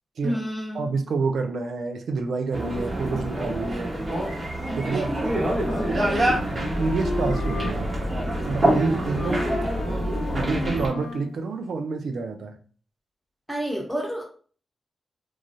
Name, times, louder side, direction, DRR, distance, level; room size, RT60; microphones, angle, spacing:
voice 1, 0.2-0.9 5.6-6.1 9.2-9.6 13.5-14.2, equal, 5° right, -1 dB, 1.1 m, -30 dB
voice 2, 0.7-3.9 4.7-5.1 5.9-6.4 6.8-7.9 8.4-9.4 10.3-12.6, right 4 dB, 80° right, 6 dB, 0.4 m, -28 dB
sound 1, 2.5-10.9, right 1 dB, 40° right, 1.1 m, -26 dB
Wind instrument woodwind instrument, 5.5-11.4, left 4 dB, 75° left, 0.4 m, -35 dB
3.2 x 2.3 x 2.6 m, 0.41 s
cardioid pair, 80°, 0 cm